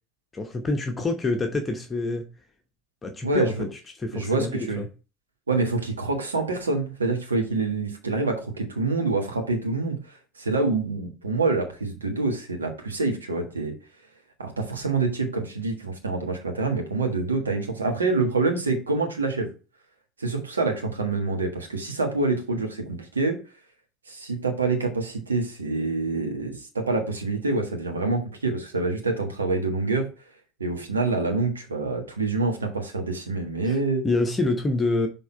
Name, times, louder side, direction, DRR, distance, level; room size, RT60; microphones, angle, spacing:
voice 1, 0.3-2.3 3.0-3.7 4.0-4.9 33.6-33.8 34.0-35.1, left 2 dB, 25° left, 1.0 m, -26 dB
voice 2, 3.2-3.7 4.1-4.8 5.5-10.0 10.4-13.7 14.4-19.5 20.2-23.4 24.1-30.1 30.6-34.0, right 3 dB, 85° right, 1.4 m, -26 dB
6.1 x 3.7 x 4.4 m
figure-of-eight pair, 70°, 0 cm